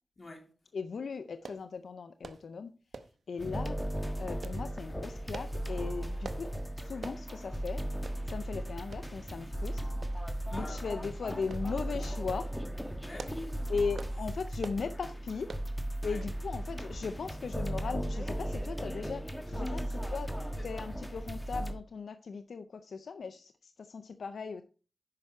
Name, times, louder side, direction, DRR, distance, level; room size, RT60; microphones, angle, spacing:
voice 1, 0.2-0.5 3.3-3.4 10.5-11.0 13.0-13.9 16.0-16.3 19.5-19.9 20.3-20.9, left 2 dB, 50° left, 2.9 m, -46 dB
voice 2, 0.7-2.7 3.3-3.8 4.2-7.8 8.3-9.8 10.5-12.5 13.7-15.5 16.0-19.8 20.1-20.3 20.6-24.6, left 5 dB, 85° left, 0.5 m, -38 dB
sound 1, 1.4-1.6 2.2-2.4 2.9-3.2 3.6-3.8 4.4-4.6 5.3-5.6 6.2-6.4 7.0-7.2 7.6-7.7 8.1-8.2 8.9-9.1 10.0-10.4 10.7-10.9 11.5-11.7 12.1-12.5 13.0-13.5 13.9-14.2 14.6-14.9 15.5-15.7 16.2-16.4 16.7-16.8, right 4 dB, 80° right, 0.8 m, -45 dB
sound 2, 3.4-21.7, right 1 dB, 10° left, 1.5 m, -36 dB
9.6 x 5.9 x 4.4 m
cardioid pair, 55°, 0 cm